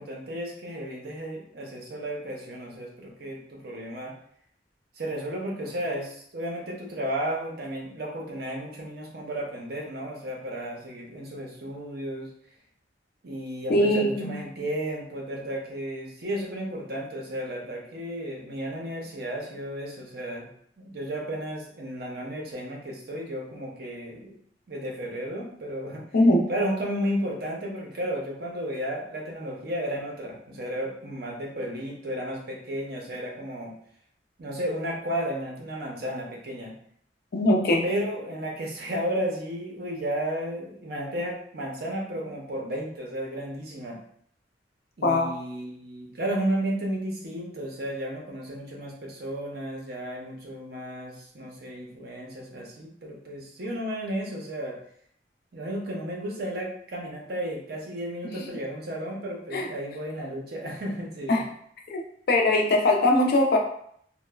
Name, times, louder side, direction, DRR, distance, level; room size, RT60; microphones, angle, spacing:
voice 1, 0.0-4.1 5.0-12.3 13.2-20.5 20.8-24.4 24.7-26.0 26.5-33.7 34.4-36.7 37.8-44.0 45.0-54.8 55.5-61.4, right 1 dB, 60° right, -1 dB, 0.6 m, -33 dB
voice 2, 13.7-14.3 26.1-26.4 37.3-37.8 45.0-45.3 59.5-59.7 61.3-61.4 61.9-62.0 62.3-63.6, left 1 dB, 55° left, 1 dB, 0.4 m, -21 dB
2.9 x 2.1 x 2.2 m, 0.65 s
head